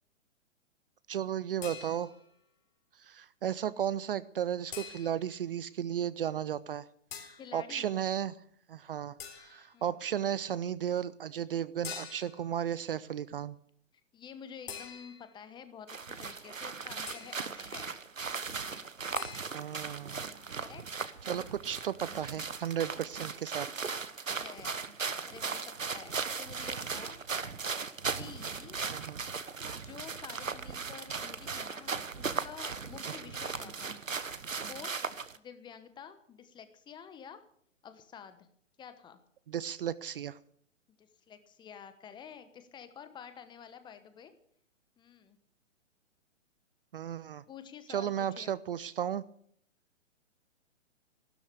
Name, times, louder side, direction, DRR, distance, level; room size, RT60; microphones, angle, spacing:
voice 1, 1.1-2.1 3.0-6.9 7.5-8.4 8.7-13.6 19.5-20.2 21.3-23.8 28.9-29.2 39.5-40.4 46.9-47.4 47.9-49.2, right 9 dB, 45° right, 17 dB, 0.6 m, -34 dB
sound 1, 1.6-2.3 4.7-5.4 7.1-7.5 9.2-9.8 11.8-12.5 14.7-15.4 17.1-17.5 19.1-19.5, left 7 dB, 50° left, 3.6 m, -45 dB
voice 2, 7.4-7.9 9.7-9.9 14.1-18.0 20.6-20.8 23.1-23.7 24.3-27.2 28.2-28.8 29.7-34.0 34.7-37.4 37.8-38.5 38.8-39.2 41.0-44.3 45.0-45.4 47.5-48.5, left 7 dB, 10° left, 11 dB, 1.1 m, -50 dB
sound 2, 15.9-35.4, right 5 dB, 85° right, 1.2 m, -38 dB
15.5 x 12.5 x 6.7 m, 0.64 s
figure-of-eight pair, 125°, 38 cm